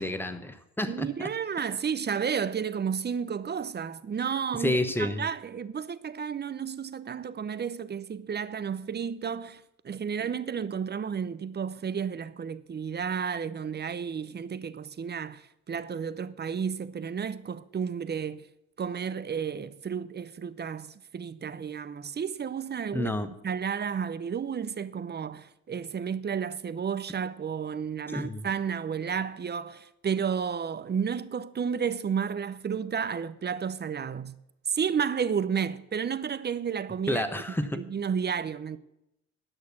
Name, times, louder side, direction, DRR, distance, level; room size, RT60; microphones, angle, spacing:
voice 1, 0.0-1.1 4.6-5.2 22.9-23.3 28.1-28.4 37.1-37.8, left 1 dB, 5° left, 1.2 m, -29 dB
voice 2, 0.8-18.5 18.8-23.1 23.4-34.4 34.7-37.2 37.7-38.8, right 7 dB, 35° right, 0.7 m, -32 dB
11.0 x 6.5 x 7.1 m
cardioid pair, 90°, 30 cm